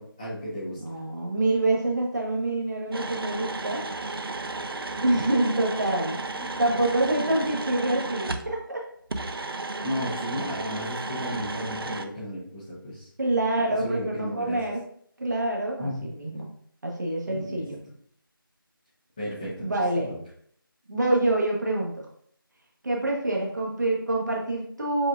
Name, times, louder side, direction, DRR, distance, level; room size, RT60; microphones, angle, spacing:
voice 1, 0.0-0.8 4.9-5.0 6.1-6.5 9.8-13.1 13.6-14.6 15.8-16.1 17.3-17.6 19.2-19.7 20.0-20.2, equal, 10° left, -11 dB, 0.5 m, -34 dB
voice 2, 0.7-3.8 5.0-6.2 6.6-8.8 13.2-14.8 15.2-16.5 16.8-17.8 19.6-20.1 20.9-21.9 22.8-25.1, right 2 dB, 50° right, -1 dB, 1.1 m, -26 dB
sound 1, 2.9-8.5 9.1-12.0, right 3 dB, 85° right, 0.5 m, -33 dB
7.3 x 2.5 x 2.4 m, 0.63 s
figure-of-eight pair, 170°, 12 cm